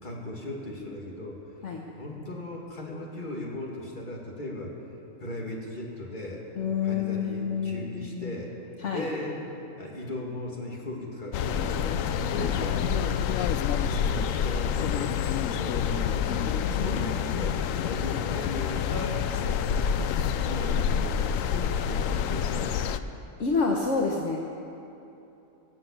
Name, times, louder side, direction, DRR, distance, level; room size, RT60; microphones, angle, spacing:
voice 1, 0.0-1.6 1.9-4.7 5.2-6.4 6.8-8.5 8.9-9.4 9.8-12.0 12.3-13.3 13.7-23.0, left 1 dB, 40° left, -2 dB, 2.5 m, -37 dB
voice 2, 6.6-8.3 8.8-9.0 12.4-12.5 16.3-17.2 23.4-24.4, left 5 dB, 65° left, -1 dB, 1.5 m, -29 dB
sound 1, 11.3-23.0, left 8 dB, 85° left, 1.0 m, -27 dB
21.0 x 7.7 x 8.7 m, 2.9 s
omnidirectional pair, 1.4 m